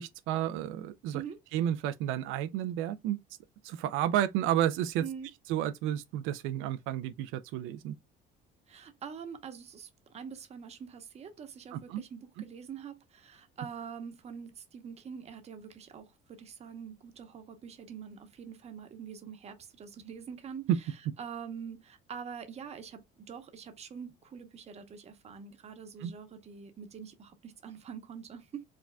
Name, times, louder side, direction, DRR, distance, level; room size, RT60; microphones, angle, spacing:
voice 1, 0.0-1.2 1.5-3.2 3.6-5.0 5.5-7.9 11.7-12.0 26.0-26.1, right 11 dB, 85° right, 0.4 m, -31 dB
voice 2, 8.7-20.9 21.2-28.6, right 7 dB, 30° right, 0.9 m, -45 dB
4.8 x 3.6 x 2.2 m
cardioid pair, 155°, 20 cm